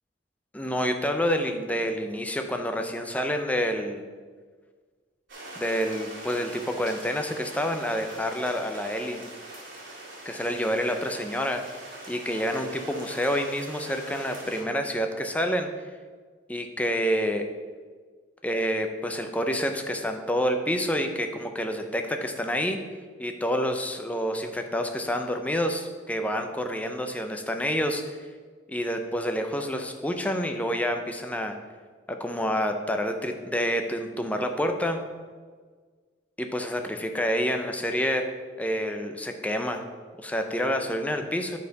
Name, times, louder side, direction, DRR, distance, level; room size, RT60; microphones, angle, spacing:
voice 1, 0.5-4.0 5.6-9.2 10.2-11.8 12.1-15.7 16.5-17.5 18.4-22.8 23.2-28.3 28.7-31.6 32.1-35.0 36.4-38.3 38.6-39.8 40.2-41.6, equal, 10° left, 5 dB, 0.5 m, -28 dB
sound 1, 5.3-14.6, right 2 dB, 90° right, 2.1 m, -42 dB
8.3 x 4.2 x 5.2 m, 1.5 s
head